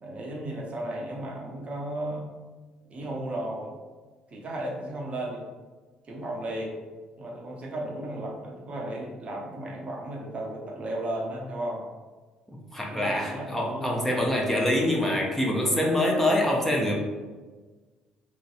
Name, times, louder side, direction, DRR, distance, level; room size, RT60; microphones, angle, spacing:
voice 1, 0.0-2.3 2.9-3.7 4.3-5.4 6.1-6.8 7.2-11.8 12.9-14.1, right 1 dB, 35° right, -1 dB, 0.6 m, -34 dB
voice 2, 12.5-16.9, left 1 dB, 5° left, -1 dB, 0.5 m, -25 dB
3.0 x 2.6 x 2.5 m, 1.3 s
figure-of-eight pair, 50°, 4 cm